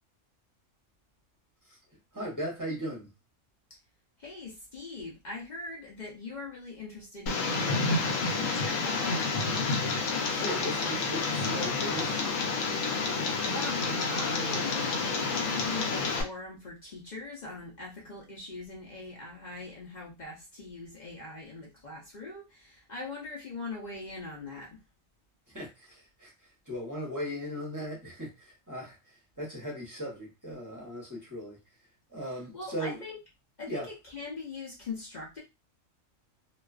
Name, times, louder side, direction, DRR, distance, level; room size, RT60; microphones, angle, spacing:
voice 1, 2.1-3.1 9.9-12.3 25.5-26.3 26.7-31.6 32.1-33.0 33.7-33.9, equal, 15° right, -4 dB, 0.8 m, -38 dB
voice 2, 4.2-9.4 13.5-24.8 32.5-33.2 33.6-35.4, left 3 dB, 50° left, -3 dB, 0.5 m, -41 dB
Tick, 7.3-16.2, left 3 dB, 90° left, 1.0 m, -29 dB
2.3 x 2.3 x 2.3 m, 0.24 s
omnidirectional pair, 1.3 m